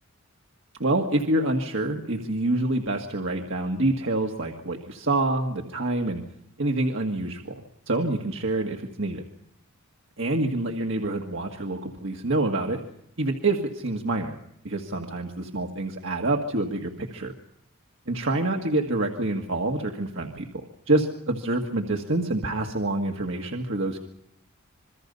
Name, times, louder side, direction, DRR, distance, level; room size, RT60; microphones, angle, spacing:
voice 1, 0.8-6.2 6.6-9.2 10.2-12.8 13.2-14.4 14.6-17.3 18.1-24.0, right 2 dB, 60° right, 3 dB, 1.9 m, -27 dB
27.0 x 23.0 x 5.5 m, 0.74 s
head